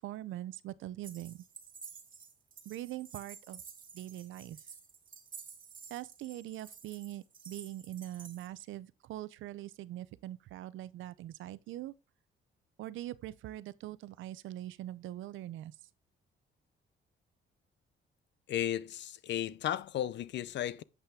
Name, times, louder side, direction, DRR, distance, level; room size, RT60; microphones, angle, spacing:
voice 1, 0.0-1.4 2.6-3.6 3.9-4.6 5.9-11.9 12.8-15.7, right 14 dB, 80° right, 0.6 m, -42 dB
sound 1, 1.0-8.5, right 6 dB, 45° right, 2.0 m, -52 dB
voice 2, 18.5-20.8, left 11 dB, 65° left, 0.6 m, -34 dB
8.3 x 5.7 x 3.6 m
cardioid pair, 90°, 20 cm